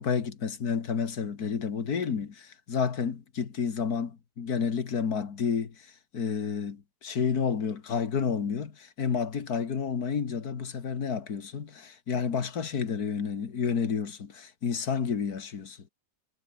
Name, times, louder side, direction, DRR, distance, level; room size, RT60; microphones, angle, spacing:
voice 1, 0.0-5.7 6.1-15.8, left 6 dB, 60° left, 2.3 m, -30 dB
omnidirectional pair, 1.9 m